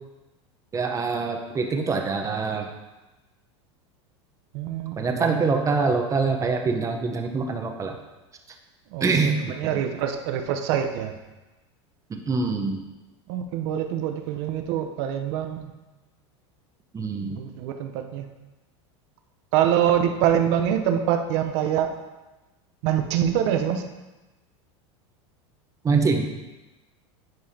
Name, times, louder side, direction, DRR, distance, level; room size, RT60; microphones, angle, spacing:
voice 1, 0.7-2.7 5.0-7.9 9.0-9.8 12.1-12.8 16.9-17.4 25.8-26.3, right 4 dB, 20° right, 3 dB, 0.9 m, -24 dB
voice 2, 4.5-5.5 8.9-11.1 13.3-15.7 17.4-18.2 19.5-21.9 22.8-23.8, right 10 dB, 65° right, 6 dB, 0.8 m, -25 dB
10.5 x 4.8 x 2.8 m, 1.1 s
supercardioid pair, 120°, 15 cm